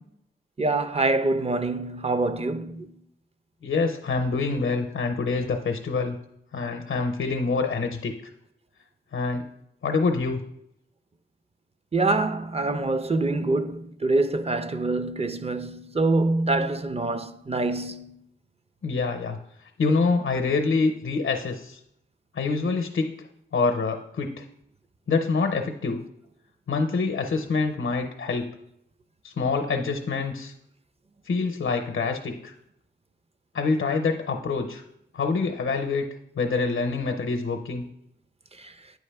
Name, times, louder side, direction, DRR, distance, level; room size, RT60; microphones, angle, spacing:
voice 1, 0.6-2.9 11.9-18.2, right 2 dB, 30° right, 0.5 m, -25 dB
voice 2, 3.6-6.2 6.5-8.1 9.1-9.4 9.8-10.4 18.8-19.4 19.8-21.8 22.3-23.1 23.5-24.4 25.1-26.0 26.7-28.5 29.2-30.5 31.3-32.5 33.5-34.8 35.1-36.1 36.4-37.8, left 4 dB, 85° left, 0.6 m, -26 dB
9.2 x 4.8 x 3.4 m
cardioid pair, 40°, 20 cm